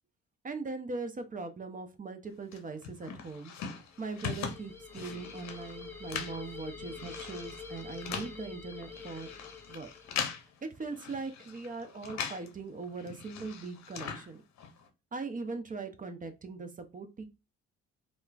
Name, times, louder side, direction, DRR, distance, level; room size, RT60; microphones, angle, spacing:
voice 1, 0.4-3.5 4.0-9.3 9.7-9.9 10.6-14.4 15.1-17.3, right 3 dB, 25° right, 7 dB, 0.5 m, -40 dB
sound 1, 2.5-12.5 12.8-14.9, left 7 dB, 55° left, 0.7 m, -41 dB
sound 2, 4.0-10.3, left 5 dB, 5° left, 0.9 m, -46 dB
3.0 x 2.0 x 2.3 m, 0.27 s
hypercardioid pair, 50°, 34 cm